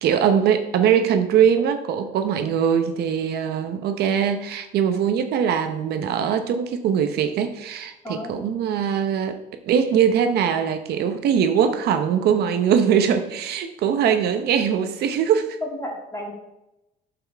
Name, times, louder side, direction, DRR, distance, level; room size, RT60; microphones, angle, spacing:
voice 1, 0.0-9.4 9.7-15.6, right 8 dB, 75° right, 7 dB, 0.8 m, -21 dB
voice 2, 8.0-8.4 15.6-16.3, left 1 dB, 20° left, 0 dB, 2.2 m, -32 dB
8.8 x 7.0 x 3.5 m, 0.92 s
cardioid pair, 110°, 17 cm